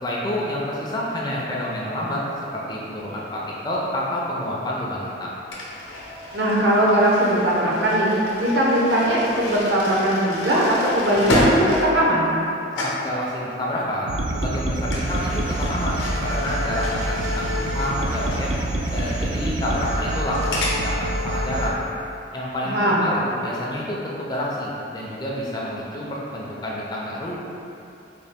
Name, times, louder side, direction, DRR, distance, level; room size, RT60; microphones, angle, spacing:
voice 1, 0.0-2.2 2.5-5.3 12.8-18.5 18.9-21.8 22.3-27.3, left 1 dB, 20° left, -5 dB, 0.4 m, -28 dB
sound 1, 5.5-12.5 12.7-13.1 14.9-20.8, left 1 dB, 85° left, 0.7 m, -30 dB
voice 2, 6.3-8.1 8.4-12.3 22.6-23.0, right 1 dB, 65° right, -5 dB, 0.7 m, -20 dB
sound 2, 14.1-21.7, right 1 dB, 90° right, 0.4 m, -26 dB
3.8 x 2.4 x 3.5 m, 2.7 s
head